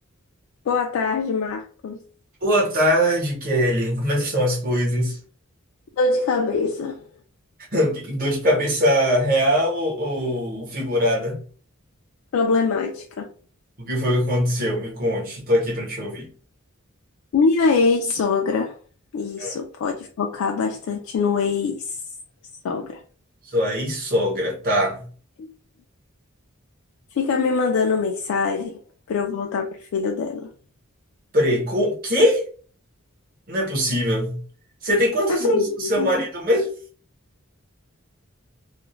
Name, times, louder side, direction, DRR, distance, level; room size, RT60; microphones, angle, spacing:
voice 1, 0.7-2.0 6.0-7.1 12.3-13.3 17.3-18.8 19.1-22.0 22.6-23.0 25.4-25.5 27.2-28.8 29.1-30.5 35.3-36.1, left 4 dB, 70° left, 0.3 m, -23 dB
voice 2, 2.4-5.2 7.7-11.4 13.8-16.3 19.4-19.5 23.5-25.0 31.3-32.5 33.5-34.4 34.8-36.7, equal, 45° right, 0.9 m, -22 dB
2.4 x 2.0 x 2.9 m
head